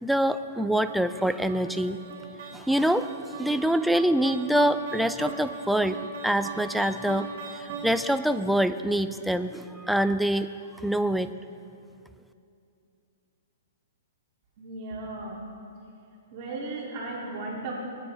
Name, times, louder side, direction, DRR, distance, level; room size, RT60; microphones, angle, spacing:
voice 1, 0.0-2.0 2.5-3.1 3.4-6.0 6.2-7.3 7.5-10.5 10.8-11.3, right 1 dB, ahead, 10 dB, 0.4 m, -25 dB
sound 1, 0.9-8.3, right 4 dB, 60° right, 2.2 m, -39 dB
voice 2, 14.6-15.4 16.3-17.7, right 2 dB, 45° right, -4 dB, 2.5 m, -35 dB
20.5 x 9.6 x 3.4 m, 2.6 s
hypercardioid pair, 140°, 0 cm